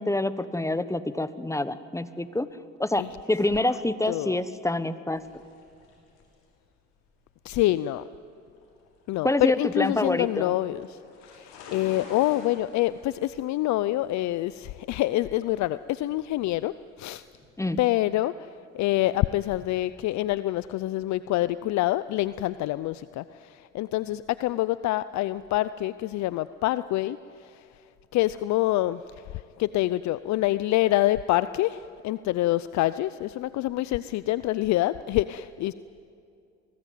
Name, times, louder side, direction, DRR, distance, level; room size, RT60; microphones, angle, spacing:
voice 1, 0.0-2.5 2.8-3.0 3.3-5.2 9.2-10.5 17.6-17.8, left 2 dB, 10° left, 13 dB, 1.2 m, -26 dB
voice 2, 4.1-4.4 7.4-8.0 9.1-11.0 11.3-16.7 17.0-17.2 17.8-18.5 18.7-27.6 28.1-35.7, left 16 dB, 65° left, 16 dB, 0.6 m, -26 dB
sound 1, 5.1-17.5, left 3 dB, 85° left, 6.2 m, -51 dB
24.0 x 19.5 x 9.3 m, 2.4 s
supercardioid pair, 75°, 30 cm